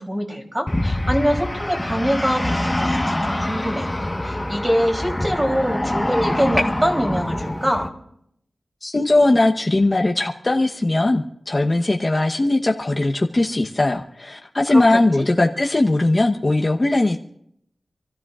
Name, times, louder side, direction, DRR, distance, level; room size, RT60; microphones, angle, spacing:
voice 1, 0.0-3.9 4.2-7.9 14.7-14.8 15.2-15.3, equal, 15° right, 1 dB, 3.3 m, -23 dB
sound 1, 0.7-7.9, left 1 dB, 15° left, 1.3 m, -24 dB
voice 2, 8.8-17.2, left 2 dB, 40° left, 1 dB, 1.0 m, -19 dB
28.0 x 13.5 x 2.5 m, 0.72 s
cardioid pair, 55°, 0 cm